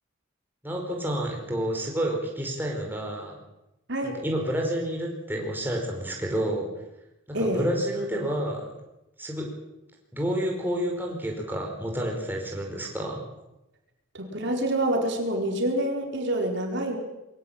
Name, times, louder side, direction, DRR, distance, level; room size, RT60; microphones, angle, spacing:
voice 1, 0.6-3.4 4.0-6.7 7.3-8.7 9.2-9.5 10.1-13.2, right 1 dB, 10° right, 0 dB, 4.9 m, -29 dB
voice 2, 7.3-7.7 14.1-17.0, right 1 dB, 60° right, 2 dB, 4.7 m, -27 dB
23.0 x 16.5 x 8.9 m, 0.94 s
head